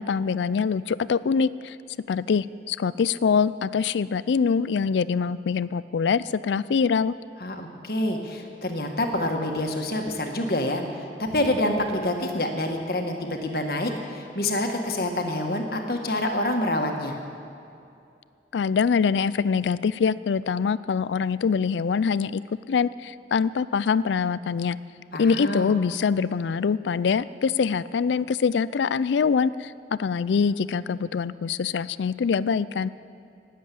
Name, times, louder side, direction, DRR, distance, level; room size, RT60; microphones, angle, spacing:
voice 1, 0.0-1.8 2.1-7.1 18.5-22.4 22.7-24.8 25.2-32.9, left 6 dB, 90° left, 18 dB, 0.4 m, -24 dB
voice 2, 7.4-10.8 11.2-17.1 25.1-25.8, left 1 dB, 55° left, 3 dB, 1.5 m, -27 dB
19.0 x 7.6 x 8.5 m, 2.6 s
head